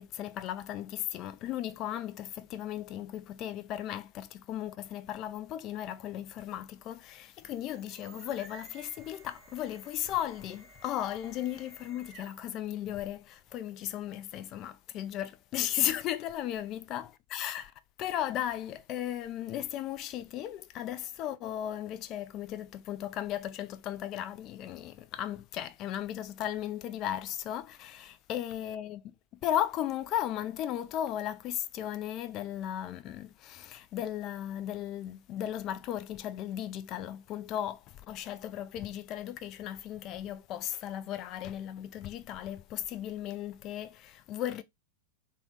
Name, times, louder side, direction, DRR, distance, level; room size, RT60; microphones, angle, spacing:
voice 1, 0.0-17.7 18.0-29.1 29.4-44.6, left 11 dB, 35° left, 0.3 m, -36 dB
sound 1, 7.3-12.6, right 3 dB, 20° right, 0.8 m, -54 dB
3.5 x 2.1 x 3.6 m
figure-of-eight pair, 90°, 0 cm